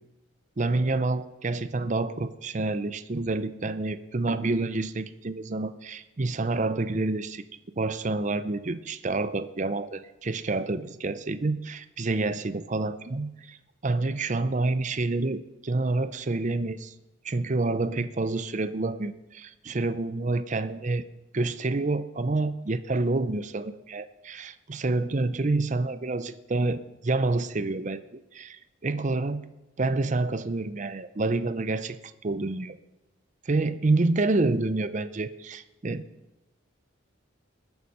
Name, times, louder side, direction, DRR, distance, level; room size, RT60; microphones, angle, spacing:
voice 1, 0.6-7.4 7.8-13.6 13.8-16.9 17.2-21.1 21.3-29.4 29.8-32.8 33.5-36.0, right 2 dB, 35° right, 13 dB, 0.6 m, -28 dB
21.0 x 7.0 x 5.5 m, 1.0 s
head